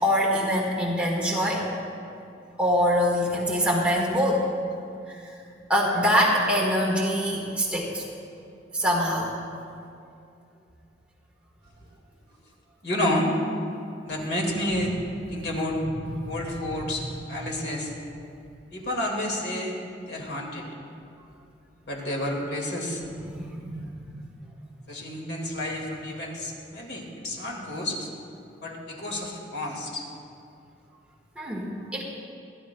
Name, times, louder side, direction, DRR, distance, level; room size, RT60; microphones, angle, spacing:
voice 1, 0.0-1.8 2.6-4.4 5.7-8.0 8.7-9.3 16.2-16.3 23.0-24.2 31.4-32.0, equal, 5° right, -4 dB, 1.5 m, -24 dB
voice 2, 12.8-13.3 14.0-15.0 15.3-15.8 16.3-17.9 18.7-19.8 20.1-20.7 21.9-23.0 24.9-28.1 28.6-30.1, left 1 dB, 60° left, -1 dB, 2.1 m, -30 dB
27.5 x 11.5 x 2.3 m, 2.5 s
head